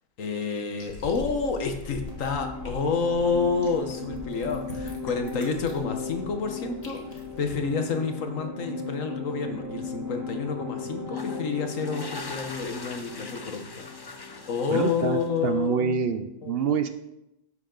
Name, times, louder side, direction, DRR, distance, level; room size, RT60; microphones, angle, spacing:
voice 1, 0.2-16.0 16.4-16.6, left 5 dB, 80° left, 5 dB, 1.6 m, -29 dB
sound 1, 0.8-7.6, left 2 dB, 55° left, 2.1 m, -43 dB
sound 2, 2.0-15.3, left 4 dB, 15° right, 1.0 m, -37 dB
sound 3, 11.1-15.6, left 3 dB, 30° left, 0.5 m, -42 dB
voice 2, 14.7-16.9, right 7 dB, 55° right, 9 dB, 0.8 m, -26 dB
11.5 x 8.5 x 3.9 m, 0.87 s
omnidirectional pair, 1.3 m